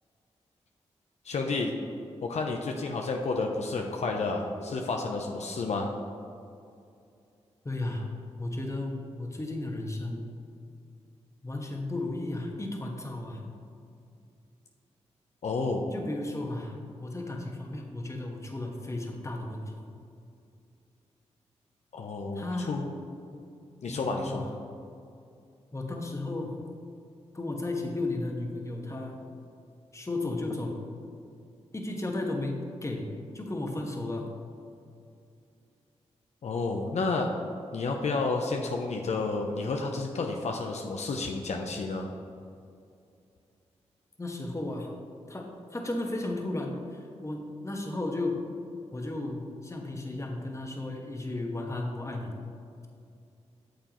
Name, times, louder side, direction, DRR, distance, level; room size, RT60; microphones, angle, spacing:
voice 1, 1.2-1.7 2.2-5.9 15.4-15.8 21.9-22.9 23.8-24.4 36.4-37.3 37.7-42.1, left 3 dB, 70° left, 2 dB, 0.7 m, -30 dB
voice 2, 7.6-10.3 11.4-13.4 15.9-19.7 22.3-22.8 23.3-23.4 23.9-24.4 25.7-26.6 27.3-29.2 29.9-30.8 31.7-33.1 33.3-34.3 44.2-44.9 45.3-48.4 48.9-52.3, left 2 dB, 25° left, 1 dB, 1.3 m, -34 dB
9.2 x 6.8 x 3.0 m, 2.5 s
cardioid pair, 55°, 12 cm